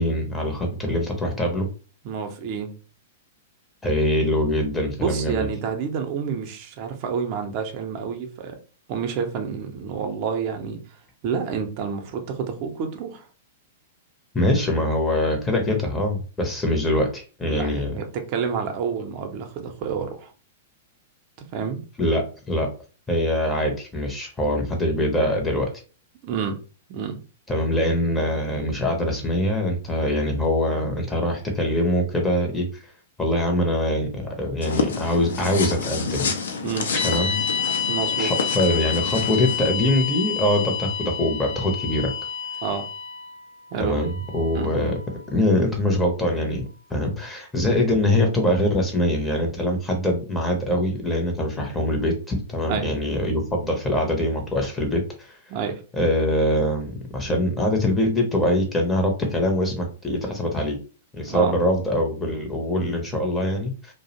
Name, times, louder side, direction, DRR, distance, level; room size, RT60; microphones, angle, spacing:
voice 1, 0.0-1.7 3.8-5.5 14.3-17.9 22.0-22.7 23.1-25.7 27.5-32.8 33.2-36.3 37.0-37.4 38.2-42.1 43.8-45.0 45.3-46.6 46.9-55.3 55.9-60.8 61.1-63.9, left 1 dB, 10° left, 0.6 m, -23 dB
voice 2, 2.0-2.8 5.0-8.6 8.9-10.8 11.2-13.3 17.4-20.3 21.5-21.8 26.2-26.6 26.9-27.2 36.6-36.9 37.9-38.3 42.6-42.9 43.7-43.9 44.5-44.7 52.7-52.9 55.5-55.8 61.3-61.6, right 6 dB, 45° right, 0.5 m, -28 dB
sound 1, 34.6-39.7, left 5 dB, 70° left, 0.4 m, -29 dB
sound 2, 36.9-45.2, left 7 dB, 50° left, 0.8 m, -29 dB
2.4 x 2.0 x 2.7 m
figure-of-eight pair, 105°, 0 cm